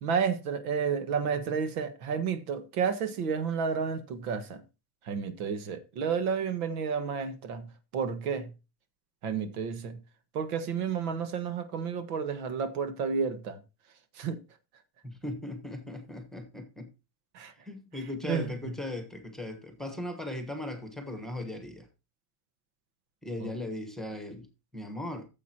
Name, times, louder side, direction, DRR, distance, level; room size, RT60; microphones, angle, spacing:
voice 1, 0.0-4.6 5.1-7.6 7.9-8.5 9.2-10.0 10.3-13.6 14.2-14.4 17.3-17.5 18.3-18.5 23.4-23.5, right 6 dB, 80° right, 1.6 m, -31 dB
voice 2, 15.0-16.9 17.6-21.9 23.2-24.5 24.7-25.3, left 1 dB, ahead, 1.2 m, -38 dB
14.5 x 7.3 x 2.9 m
supercardioid pair, 150°, 44 cm